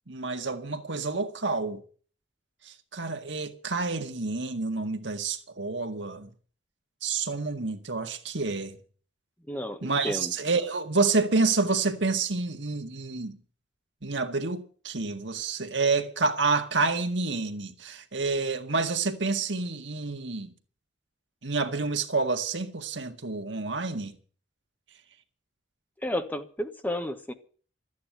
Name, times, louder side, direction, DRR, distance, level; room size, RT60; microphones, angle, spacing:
voice 1, 0.1-1.8 2.6-6.3 7.0-8.8 9.8-13.4 14.0-20.5 21.4-24.1, right 3 dB, 75° right, 1.8 m, -28 dB
voice 2, 9.5-10.3 26.0-27.3, left 1 dB, 10° left, 1.3 m, -32 dB
13.5 x 9.4 x 9.0 m
head